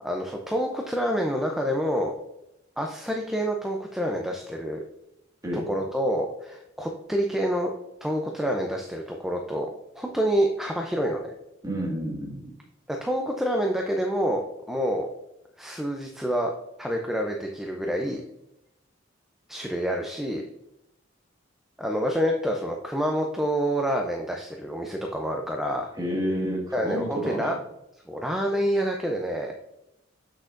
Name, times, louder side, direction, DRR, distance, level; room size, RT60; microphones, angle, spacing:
voice 1, 0.0-2.2 2.8-4.8 5.7-7.7 8.0-9.7 10.0-11.3 12.9-14.4 14.7-15.1 15.6-16.5 16.8-18.2 19.5-20.5 21.8-25.9 26.7-27.6 28.1-29.5, equal, ahead, 1 dB, 0.5 m, -27 dB
voice 2, 11.6-12.5 25.9-27.5, equal, 20° right, -2 dB, 1.7 m, -30 dB
7.9 x 6.4 x 2.5 m, 0.86 s
head